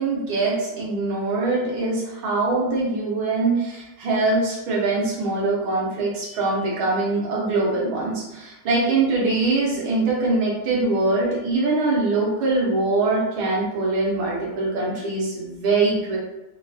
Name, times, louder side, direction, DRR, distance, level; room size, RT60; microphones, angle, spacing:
voice 1, 0.0-16.2, right 3 dB, 85° right, -4 dB, 1.8 m, -23 dB
4.0 x 2.3 x 2.5 m, 0.96 s
omnidirectional pair, 2.2 m